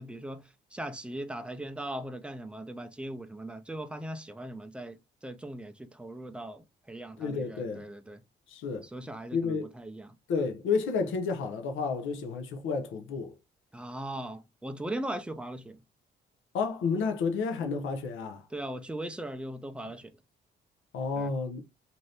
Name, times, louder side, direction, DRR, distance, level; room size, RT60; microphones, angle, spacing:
voice 1, 0.0-8.2 8.8-10.2 13.7-15.8 18.5-20.1 21.2-21.3, right 1 dB, 5° right, 0.5 m, -39 dB
voice 2, 7.2-7.8 8.5-8.9 9.3-9.7 10.3-13.3 16.5-18.5 19.8-19.9 20.9-21.6, left 5 dB, 80° left, 0.6 m, -31 dB
2.7 x 2.7 x 3.2 m
cardioid pair, 90°, 20 cm